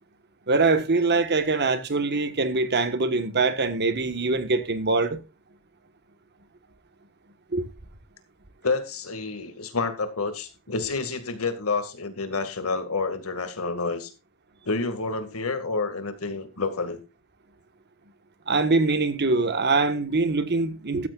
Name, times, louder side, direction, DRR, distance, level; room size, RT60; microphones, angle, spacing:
voice 1, 0.5-5.2 7.5-7.6 18.5-21.1, right 3 dB, 50° right, 1.5 m, -23 dB
voice 2, 8.6-14.1 14.7-17.0, left 3 dB, 75° left, 2.1 m, -29 dB
15.0 x 13.0 x 2.5 m
head